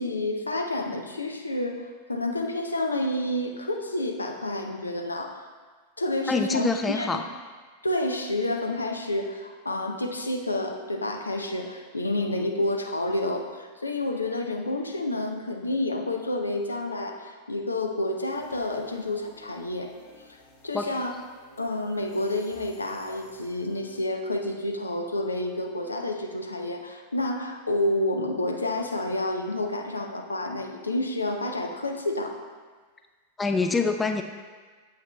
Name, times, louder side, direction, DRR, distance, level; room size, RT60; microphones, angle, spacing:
voice 1, 0.0-5.4 6.0-7.2 7.8-19.9 20.2-20.3 20.6-21.1 21.6-32.4, left 1 dB, 80° left, 3 dB, 0.5 m, -29 dB
voice 2, 6.3-7.2 20.7-20.9 33.4-34.2, left 4 dB, 15° left, 6 dB, 0.3 m, -25 dB
sound 1, 18.3-24.0, left 1 dB, 55° left, 1.7 m, -53 dB
7.7 x 5.6 x 2.2 m, 1.5 s
figure-of-eight pair, 90°, 0 cm